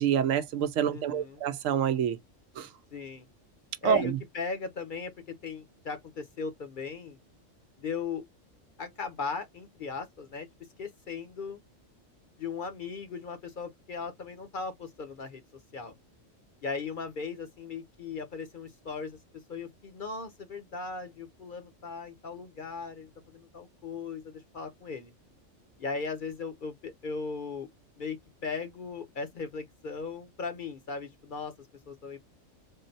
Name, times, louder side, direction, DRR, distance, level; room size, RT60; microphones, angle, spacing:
voice 1, 0.0-2.2 2.6-2.7 3.8-4.1, right 8 dB, 85° right, 1.0 m, -27 dB
voice 2, 0.8-1.4 2.9-3.3 3.8-7.2 7.8-8.2 8.8-10.5 10.8-11.6 12.4-15.4 15.7-15.9 16.6-19.2 19.5-25.1 25.8-27.7 28.0-32.2, left 4 dB, 50° left, 0.7 m, -38 dB
3.7 x 2.0 x 3.9 m
omnidirectional pair, 1.3 m